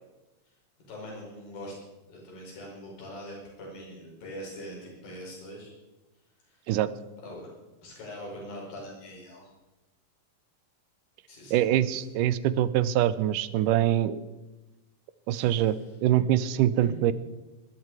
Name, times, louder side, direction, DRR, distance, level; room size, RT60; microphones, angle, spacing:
voice 1, 0.9-1.8 2.1-5.8 6.5-6.6 7.2-7.5 7.8-9.5 11.3-11.9 15.3-15.9 16.8-17.0, equal, 80° left, -3 dB, 6.9 m, -43 dB
voice 2, 11.5-14.2 15.3-17.1, right 12 dB, 80° right, 15 dB, 2.1 m, -24 dB
19.5 x 12.5 x 4.8 m, 1.1 s
omnidirectional pair, 4.1 m